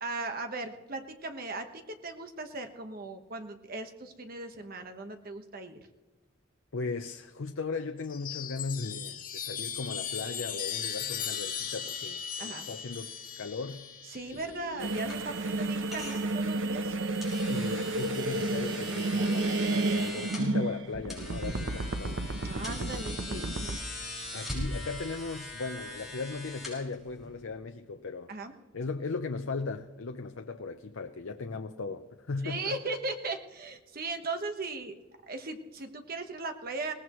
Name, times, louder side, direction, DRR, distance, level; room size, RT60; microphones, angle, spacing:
voice 1, 0.0-5.8 12.4-12.7 14.1-17.0 22.4-23.8 28.3-28.5 32.4-35.0 35.3-36.9, right 3 dB, 50° right, 6 dB, 1.2 m, -38 dB
voice 2, 6.7-13.9 14.3-15.0 17.5-22.2 22.8-23.0 23.3-23.6 24.3-28.3 28.7-32.8, left 4 dB, 85° left, 6 dB, 0.7 m, -37 dB
Chime, 8.0-15.8 17.0-17.7, left 8 dB, 45° left, 2.0 m, -38 dB
sound 1, 14.2-27.4, left 1 dB, ahead, 5.8 m, -42 dB
sound 2, 14.8-23.8, right 2 dB, 70° right, 0.8 m, -31 dB
21.5 x 18.0 x 3.1 m, 1.2 s
head